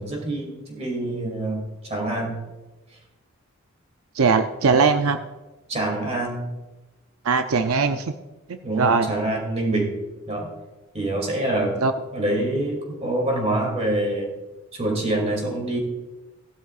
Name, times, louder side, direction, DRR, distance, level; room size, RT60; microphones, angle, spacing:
voice 1, 0.0-2.4 5.7-6.5 8.6-10.0 10.3-10.5 10.9-11.8 12.1-14.3 14.7-15.8, right 1 dB, 30° right, 1 dB, 2.6 m, -26 dB
voice 2, 4.2-5.2 7.2-8.1 8.5-9.1 11.8-11.9, right 4 dB, 90° right, 8 dB, 0.6 m, -20 dB
16.5 x 12.0 x 2.4 m, 1.1 s
head